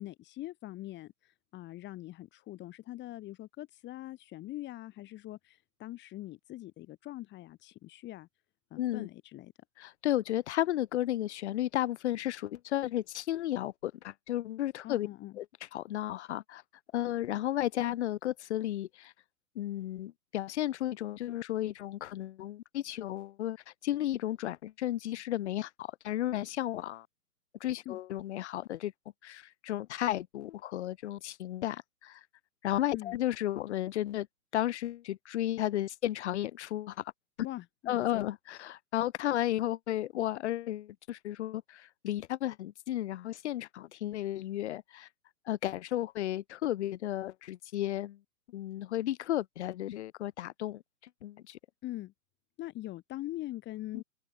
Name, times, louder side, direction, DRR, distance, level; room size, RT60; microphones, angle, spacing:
voice 1, 0.0-8.3 8.7-9.5 14.8-15.3 27.9-28.0 32.9-33.2 37.4-38.3 51.8-52.1 52.6-54.0, left 16 dB, 25° left, 3.7 m, -43 dB
voice 2, 8.8-9.1 9.8-15.1 15.4-15.5 15.7-16.6 16.9-19.1 19.6-23.6 23.8-27.1 27.6-28.9 29.2-32.2 32.6-34.3 34.5-37.0 37.9-45.1 45.5-48.2 48.5-50.8 51.2-51.6 53.9-54.0, left 13 dB, 45° left, 2.1 m, -33 dB
figure-of-eight pair, 120°, 47 cm